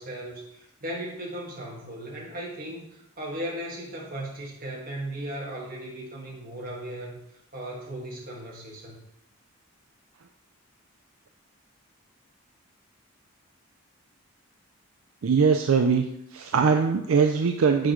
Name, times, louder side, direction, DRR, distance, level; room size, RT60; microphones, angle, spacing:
voice 1, 0.0-9.0, right 1 dB, 40° right, -3 dB, 1.6 m, -37 dB
voice 2, 15.2-16.1 16.3-17.9, right 5 dB, 75° right, 5 dB, 0.4 m, -21 dB
7.6 x 4.9 x 3.0 m, 0.77 s
head